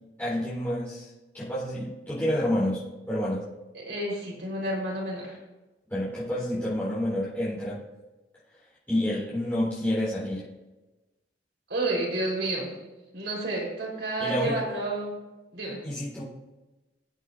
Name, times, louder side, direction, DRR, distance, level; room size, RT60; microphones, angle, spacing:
voice 1, 0.2-2.8 3.1-3.4 5.9-7.8 8.9-10.4 14.2-14.6 15.8-16.2, left 1 dB, 10° left, -11 dB, 4.3 m, -29 dB
voice 2, 3.7-5.4 11.7-12.7 13.1-15.1 15.5-15.8, right 2 dB, 90° right, -3 dB, 4.5 m, -30 dB
20.5 x 8.0 x 2.7 m, 1.1 s
head